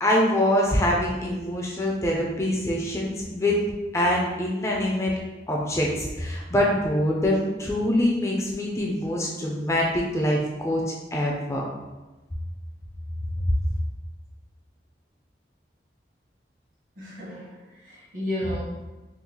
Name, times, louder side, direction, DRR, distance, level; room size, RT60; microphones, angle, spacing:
voice 1, 0.0-3.6 3.9-5.1 5.5-11.6, left 1 dB, 15° left, -2 dB, 0.3 m, -24 dB
voice 2, 17.0-18.6, left 1 dB, 50° right, -6 dB, 1.1 m, -32 dB
3.7 x 2.3 x 2.9 m, 1.1 s
head